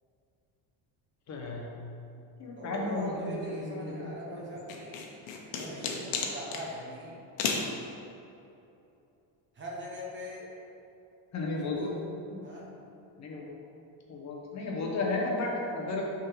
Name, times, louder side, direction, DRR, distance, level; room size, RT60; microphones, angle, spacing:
voice 1, 1.3-1.7 2.4-4.6 11.3-12.5 13.2-13.4 14.1-16.0, left 2 dB, 35° left, -1 dB, 0.8 m, -34 dB
voice 2, 2.5-5.0 5.5-7.2 9.5-10.5 11.5-12.1 12.4-12.7, equal, 25° right, -3 dB, 0.9 m, -41 dB
sound 1, 4.7-6.6 7.4-7.7, left 5 dB, 80° left, 1.0 m, -32 dB
6.1 x 3.8 x 6.1 m, 2.8 s
cardioid pair, 175°, 46 cm